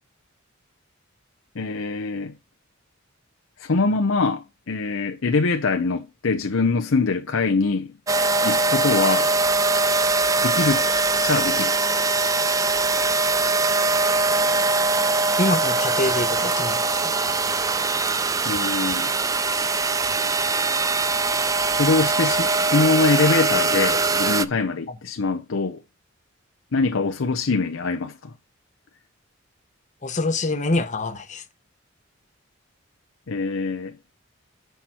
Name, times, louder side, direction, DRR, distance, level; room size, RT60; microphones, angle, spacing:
voice 1, 1.6-2.3 3.6-7.9 8.4-9.3 10.4-10.9 11.2-11.7 18.5-19.1 21.7-25.8 26.7-28.3 33.3-34.1, left 4 dB, 75° left, 0.7 m, -23 dB
sound 1, 8.1-24.4, right 3 dB, 15° right, 0.4 m, -22 dB
voice 2, 15.4-17.1 30.0-31.4, left 2 dB, 35° left, 1.0 m, -25 dB
7.8 x 5.8 x 4.3 m
head